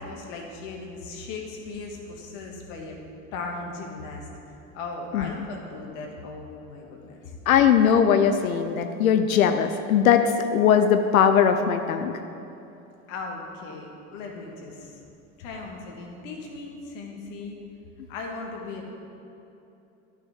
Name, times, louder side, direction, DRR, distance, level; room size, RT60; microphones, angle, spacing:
voice 1, 0.0-3.0 3.3-4.3 4.7-7.3 13.1-15.0 15.4-17.6 18.1-18.9, left 3 dB, 65° left, 1 dB, 1.7 m, -37 dB
voice 2, 7.5-12.1, left 8 dB, 85° left, 8 dB, 0.6 m, -20 dB
11.0 x 5.7 x 4.9 m, 2.8 s
hypercardioid pair, 80°, 41 cm